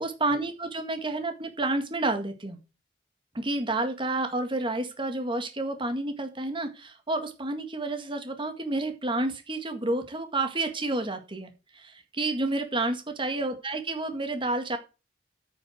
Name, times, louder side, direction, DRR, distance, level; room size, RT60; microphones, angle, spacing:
voice 1, 0.0-2.6 3.3-14.8, right 2 dB, 30° right, 7 dB, 1.9 m, -30 dB
9.3 x 6.5 x 6.2 m, 0.30 s
head